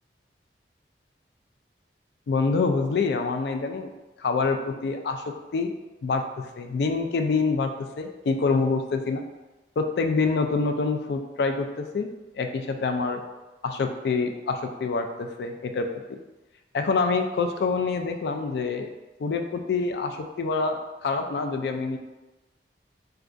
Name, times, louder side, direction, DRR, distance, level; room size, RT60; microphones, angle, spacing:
voice 1, 2.3-3.9 4.2-5.2 5.5-5.7 6.0-9.2 9.8-12.1 12.3-13.2 13.6-16.2 16.7-18.9 19.2-22.0, left 4 dB, 65° left, 6 dB, 0.3 m, -26 dB
4.5 x 2.3 x 2.5 m, 1.1 s
head